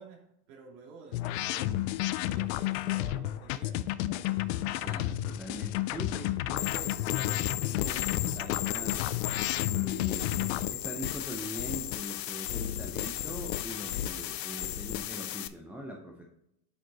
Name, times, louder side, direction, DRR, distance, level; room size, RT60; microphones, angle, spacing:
voice 1, 0.0-1.9 2.2-4.0, right 5 dB, 50° right, -1 dB, 2.5 m, -51 dB
sound 1, 1.1-10.7, left 14 dB, 45° left, 0.4 m, -31 dB
voice 2, 4.7-9.1 9.7-16.2, equal, 5° right, -1 dB, 0.6 m, -42 dB
sound 2, 6.6-15.5, left 12 dB, 90° left, 0.7 m, -35 dB
8.0 x 5.1 x 3.9 m, 0.77 s
supercardioid pair, 125°, 47 cm